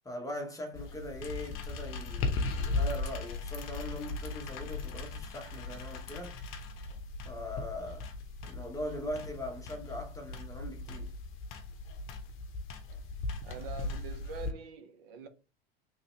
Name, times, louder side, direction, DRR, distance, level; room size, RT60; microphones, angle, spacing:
voice 1, 0.0-6.4 7.2-8.1 8.4-11.1, left 1 dB, 10° left, 1.0 m, -41 dB
sound 1, 0.7-14.5, left 3 dB, 45° left, 0.8 m, -38 dB
voice 2, 13.4-15.3, right 6 dB, 70° right, 0.7 m, -44 dB
3.1 x 2.7 x 3.2 m
hypercardioid pair, 90°, 30 cm